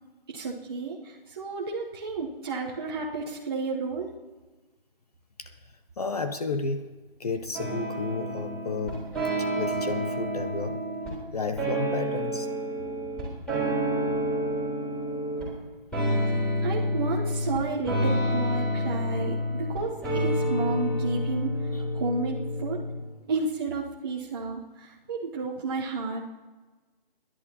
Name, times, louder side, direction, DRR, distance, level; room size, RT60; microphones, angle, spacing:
voice 1, 0.3-4.1 16.2-21.5 21.9-22.8 23.3-26.2, right 4 dB, 25° right, -4 dB, 0.9 m, -32 dB
voice 2, 6.0-6.9 7.2-10.9 11.3-12.5 21.7-21.8, left 4 dB, 40° left, 8 dB, 0.7 m, -32 dB
sound 1, 7.5-11.1 11.6-15.5 15.9-23.0, equal, ahead, 3.4 m, -29 dB
27.5 x 11.0 x 2.9 m, 1.2 s
figure-of-eight pair, 160°, 30 cm